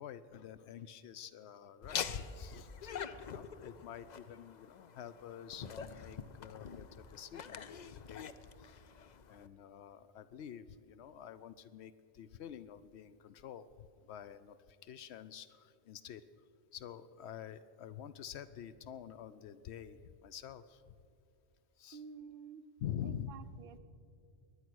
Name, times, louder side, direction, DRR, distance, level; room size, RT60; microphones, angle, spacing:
voice 1, 0.0-2.9 3.2-8.3 8.6-8.7 9.3-16.2 16.7-20.9 21.8-22.0 22.8-23.3, left 10 dB, 80° left, 14 dB, 0.8 m, -48 dB
Laughter, 1.8-9.5, left 7 dB, 50° left, 0.6 m, -45 dB
voice 2, 21.9-22.7 23.0-23.8, right 6 dB, 60° right, 8 dB, 0.9 m, -50 dB
22.0 x 9.9 x 6.2 m, 2.4 s
omnidirectional pair, 1.1 m